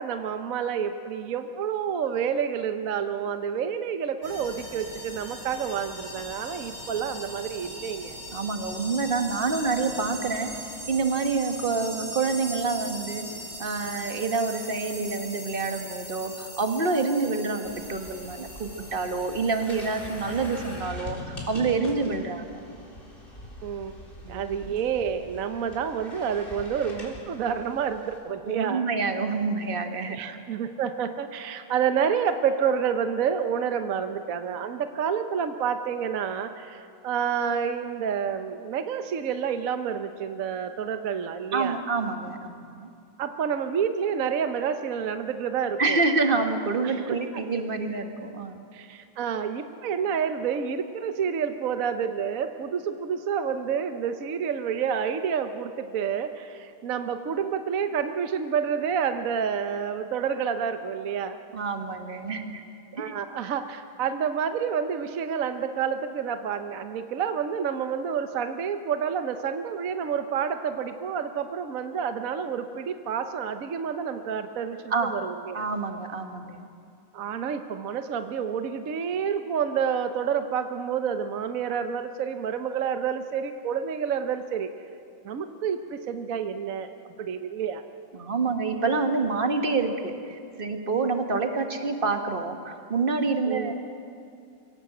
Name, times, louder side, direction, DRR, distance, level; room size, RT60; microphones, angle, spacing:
voice 1, 0.0-8.1 22.1-22.2 23.6-23.9 24.3-28.8 30.1-41.8 43.2-46.0 46.8-47.2 48.7-61.4 63.0-75.6 77.1-84.7 85.2-86.9 87.2-87.8 93.5-93.7, right 7 dB, 60° right, 8 dB, 0.9 m, -29 dB
sound 1, 4.2-20.8, equal, 80° left, 8.2 m, -40 dB
voice 2, 8.3-10.5 10.9-13.2 13.6-22.4 24.2-24.4 28.4-30.2 41.5-42.9 45.8-48.6 61.5-62.6 62.9-63.1 74.9-75.1 75.5-76.6 88.1-93.7, right 4 dB, 30° right, 5 dB, 1.3 m, -27 dB
sound 2, 17.6-28.2, left 1 dB, 25° left, 4.0 m, -43 dB
24.0 x 17.0 x 7.8 m, 2.4 s
omnidirectional pair, 2.3 m